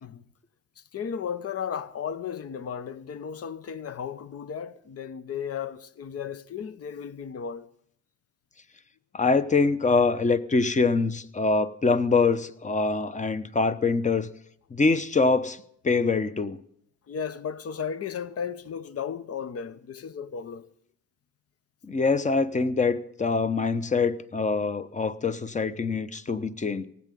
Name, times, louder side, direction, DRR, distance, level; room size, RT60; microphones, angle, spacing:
voice 1, 0.8-7.7 17.1-20.7, left 7 dB, 50° left, 1.0 m, -35 dB
voice 2, 9.1-14.3 14.7-16.6 21.8-26.9, left 4 dB, 25° left, 0.9 m, -24 dB
17.5 x 8.4 x 9.2 m
cardioid pair, 90°, 30 cm